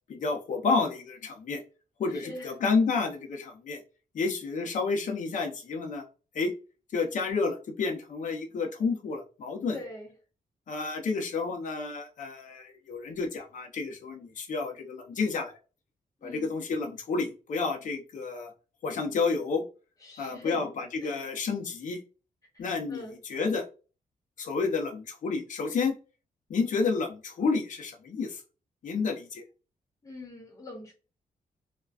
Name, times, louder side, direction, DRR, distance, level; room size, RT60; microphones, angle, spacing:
voice 1, 0.1-1.6 2.0-3.8 4.1-6.0 6.3-6.5 6.9-9.8 10.7-15.6 16.2-18.5 18.8-19.6 20.2-22.0 22.6-23.0 23.3-23.7 24.4-25.9 26.5-28.4 28.8-29.4, left 4 dB, 60° left, 2 dB, 0.7 m, -30 dB
voice 2, 9.7-10.1 16.2-16.6 20.0-20.7 21.0-21.2 22.5-23.2 30.0-30.9, left 2 dB, 25° left, 0 dB, 1.0 m, -43 dB
2.4 x 2.2 x 2.3 m, 0.33 s
wide cardioid pair, 120°, 15 cm